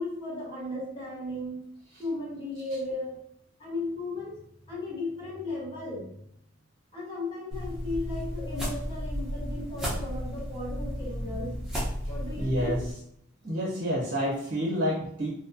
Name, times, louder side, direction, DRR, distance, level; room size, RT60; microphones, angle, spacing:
voice 1, 0.0-1.7 2.0-3.2 3.6-6.1 6.9-11.6 12.1-12.8, left 2 dB, 25° left, -7 dB, 1.1 m, -35 dB
sound 1, 7.5-12.9, equal, 5° right, 0.7 m, -34 dB
voice 2, 12.4-12.8 13.4-15.3, equal, 60° right, -4 dB, 0.8 m, -28 dB
2.7 x 2.1 x 2.5 m, 0.70 s
head